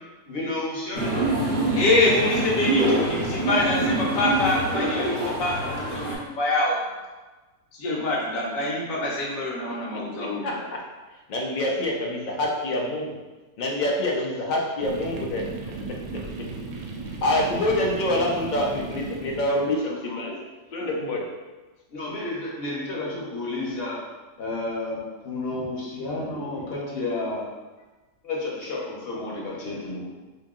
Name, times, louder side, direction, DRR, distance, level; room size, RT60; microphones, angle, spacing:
voice 1, 0.3-1.3 21.9-24.0 24.4-27.4 28.2-30.1, left 2 dB, 50° left, -5 dB, 0.8 m, -31 dB
sound 1, 0.9-6.2, right 1 dB, 40° right, 0.8 m, -25 dB
voice 2, 1.8-6.8 7.8-10.5, left 2 dB, 70° left, -3 dB, 1.1 m, -25 dB
voice 3, 9.7-10.8 11.3-13.1 13.6-15.5 17.0-20.4 20.7-21.2, left 1 dB, 90° left, -2 dB, 0.4 m, -26 dB
sound 2, 14.8-19.9, right 3 dB, 75° right, 1.0 m, -36 dB
2.9 x 2.7 x 3.6 m, 1.2 s
omnidirectional pair, 1.5 m